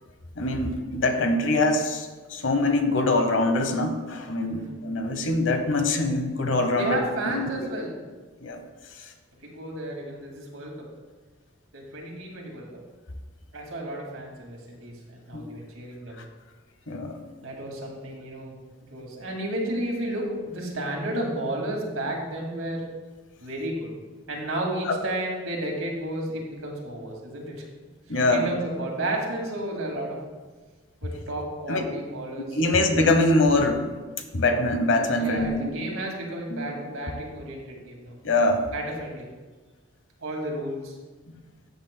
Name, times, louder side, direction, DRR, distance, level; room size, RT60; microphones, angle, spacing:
voice 1, 0.4-7.5 8.4-8.6 15.3-15.5 16.9-17.2 24.9-25.0 28.1-28.5 31.7-31.8 32.5-33.9 34.3-35.6 36.5-36.7 38.2-38.7, left 2 dB, 65° left, 6 dB, 1.0 m, -23 dB
voice 2, 6.7-8.0 9.4-10.8 11.7-12.7 13.5-16.2 17.4-18.6 18.9-22.8 23.4-23.9 24.3-27.6 28.3-30.2 31.0-32.6 35.2-38.2 38.7-39.3 40.2-41.0, right 1 dB, 90° right, -1 dB, 2.2 m, -32 dB
13.5 x 8.2 x 2.2 m, 1.3 s
head